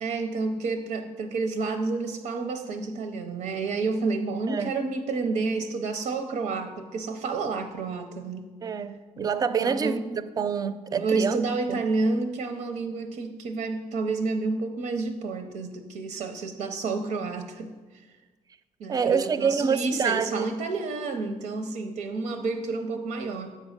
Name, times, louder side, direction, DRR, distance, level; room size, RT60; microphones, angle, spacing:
voice 1, 0.0-8.5 9.6-10.0 10.9-17.7 18.8-23.6, right 3 dB, 85° right, 0.6 m, -30 dB
voice 2, 8.6-11.4 11.7-11.8 18.9-20.5, right 6 dB, 30° right, 0.4 m, -27 dB
7.7 x 5.3 x 6.4 m
cardioid pair, 115°, 13 cm